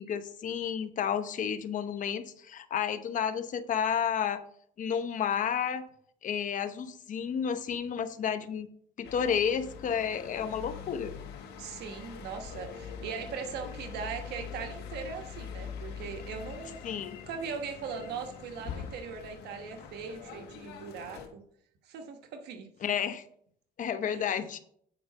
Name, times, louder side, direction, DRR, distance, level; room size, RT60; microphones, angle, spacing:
voice 1, 0.0-4.4 4.8-5.8 6.2-8.7 9.0-11.1 16.8-17.2 22.8-23.2 23.8-24.6, left 8 dB, 50° left, 10 dB, 0.9 m, -31 dB
sound 1, 9.0-21.3, left 7 dB, 90° left, 1.6 m, -44 dB
voice 2, 11.6-16.8 17.3-21.4 21.8-22.7 24.0-24.4, right 6 dB, 80° right, 5 dB, 1.2 m, -40 dB
sound 2, 11.9-18.7, left 6 dB, 65° left, 2.1 m, -56 dB
9.4 x 4.9 x 5.4 m, 0.64 s
cardioid pair, 110°, 17 cm